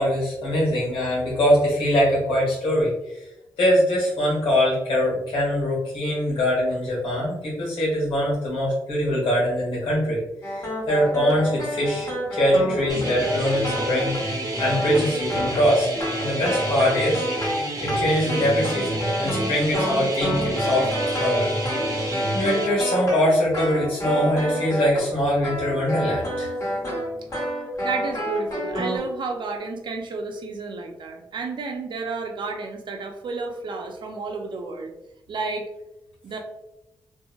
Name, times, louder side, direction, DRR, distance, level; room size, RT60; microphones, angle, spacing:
voice 1, 0.0-3.3 3.6-17.2 17.8-21.9 22.3-26.5, equal, 85° left, -5 dB, 1.5 m, -23 dB
sound 1, 10.4-25.1 25.4-29.0, equal, 40° left, 1.3 m, -29 dB
sound 2, 12.9-22.7, right 1 dB, 45° right, 1.1 m, -29 dB
voice 2, 27.8-34.9 35.3-35.7 36.2-36.4, right 3 dB, 60° right, 4 dB, 0.5 m, -31 dB
2.7 x 2.6 x 2.3 m, 0.89 s
cardioid pair, 55°, 9 cm